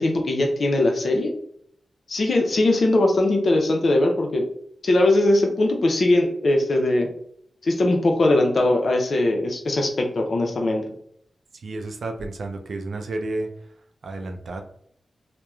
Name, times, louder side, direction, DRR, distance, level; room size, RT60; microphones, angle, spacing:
voice 1, 0.0-1.3 2.1-4.4 4.8-7.1 7.6-10.8, left 2 dB, 70° left, 2 dB, 0.5 m, -20 dB
voice 2, 11.5-13.5 14.0-14.6, right 2 dB, 80° right, 4 dB, 0.3 m, -31 dB
2.9 x 2.1 x 2.3 m, 0.68 s
cardioid pair, 40°, 0 cm